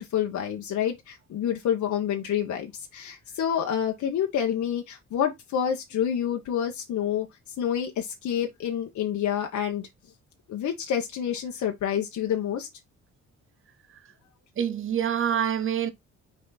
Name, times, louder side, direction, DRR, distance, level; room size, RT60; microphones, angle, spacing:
voice 1, 0.0-7.3 7.6-9.9 10.5-12.7, left 9 dB, 70° left, 1.3 m, -28 dB
voice 2, 14.6-15.9, right 9 dB, 45° right, 1.0 m, -26 dB
6.1 x 4.3 x 4.0 m
cardioid pair, 90°, 30 cm